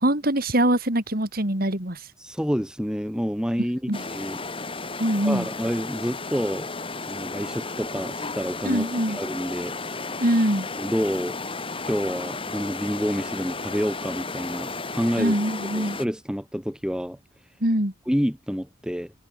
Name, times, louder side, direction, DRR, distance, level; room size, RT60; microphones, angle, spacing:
voice 1, 0.0-2.1 3.9-4.0 5.0-5.5 8.7-9.2 10.2-10.7 15.2-16.0 17.6-17.9, right 1 dB, 50° right, 4.1 m, -23 dB
voice 2, 2.2-4.4 5.2-6.7 7.1-9.8 10.8-11.4 11.9-15.4 15.7-17.2 18.1-19.1, equal, 5° right, 4.1 m, -28 dB
sound 1, 3.9-16.1, left 3 dB, 25° left, 5.2 m, -33 dB
head